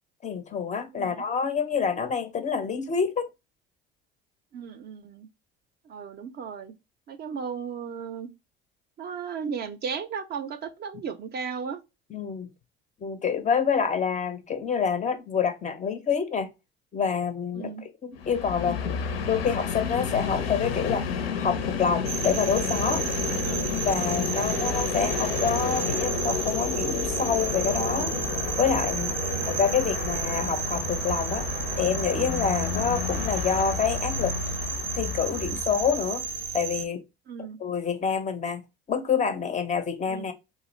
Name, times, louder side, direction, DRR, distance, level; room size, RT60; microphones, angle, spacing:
voice 1, 0.2-3.3 12.1-12.5 13.0-16.5 16.9-21.1 21.4-23.0 23.9-28.1 28.6-29.2 29.5-31.5 31.8-34.4 34.9-36.2 36.5-37.0 37.6-38.6 38.9-40.3, left 6 dB, 25° left, 0.4 m, -27 dB
voice 2, 4.5-5.3 5.9-6.7 7.1-8.3 9.0-11.8 17.6-17.8 23.4-23.7 24.4-24.7 29.3-29.7 37.3-37.6 40.1-40.3, right 6 dB, 35° right, 0.4 m, -35 dB
Train, 18.2-36.3, left 6 dB, 80° left, 0.5 m, -31 dB
sound 1, 22.1-36.9, right 6 dB, 90° right, 0.4 m, -32 dB
2.5 x 2.4 x 3.0 m
hypercardioid pair, 65°, 30 cm